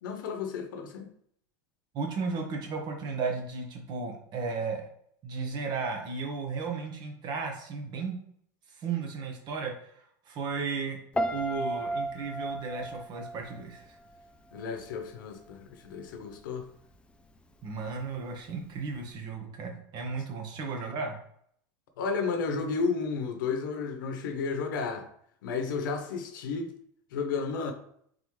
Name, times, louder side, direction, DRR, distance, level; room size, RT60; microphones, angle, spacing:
voice 1, 0.0-1.1 14.5-16.7 22.0-25.1 25.4-26.7 27.1-27.7, left 5 dB, 85° left, 6 dB, 0.8 m, -32 dB
voice 2, 1.9-4.8 5.2-8.2 8.7-11.0 11.3-14.0 17.6-21.2, right 4 dB, 45° right, 2 dB, 1.1 m, -34 dB
Piano, 11.1-14.2 14.5-15.0, right 1 dB, 10° left, 0.4 m, -33 dB
4.0 x 3.5 x 3.1 m, 0.66 s
supercardioid pair, 125°, 11 cm